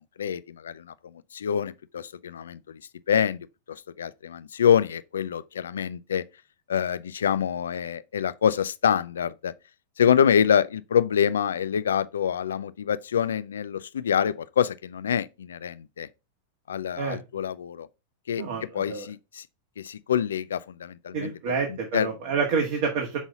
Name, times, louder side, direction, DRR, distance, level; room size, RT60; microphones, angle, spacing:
voice 1, 0.2-0.9 1.3-2.8 3.1-6.2 6.7-9.5 10.0-16.1 16.7-17.9 18.3-18.4 18.7-19.4 19.8-22.1, left 8 dB, 85° left, 0.4 m, -26 dB
voice 2, 18.4-19.1 21.1-23.2, right 5 dB, 60° right, 1.6 m, -28 dB
6.0 x 4.0 x 4.0 m
hypercardioid pair, 115°, 0 cm